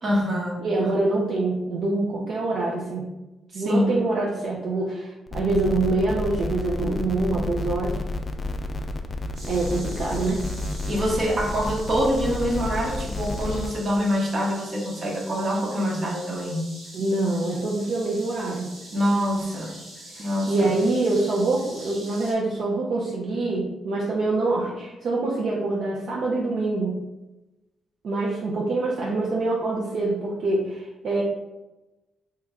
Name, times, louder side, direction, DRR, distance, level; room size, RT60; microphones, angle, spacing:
voice 1, 0.0-0.9 3.5-4.0 10.8-16.7 18.9-19.7 20.2-20.7, equal, 45° right, -1 dB, 0.9 m, -25 dB
voice 2, 0.6-3.1 3.5-8.0 9.4-10.4 16.9-18.7 20.2-27.0 28.0-31.2, right 2 dB, 70° right, -3 dB, 0.5 m, -25 dB
sound 1, 5.3-13.7, left 2 dB, 35° left, 0.3 m, -31 dB
sound 2, 9.3-22.3, right 1 dB, 90° right, 1.2 m, -43 dB
3.1 x 2.2 x 3.6 m, 0.99 s
cardioid pair, 85°, 0 cm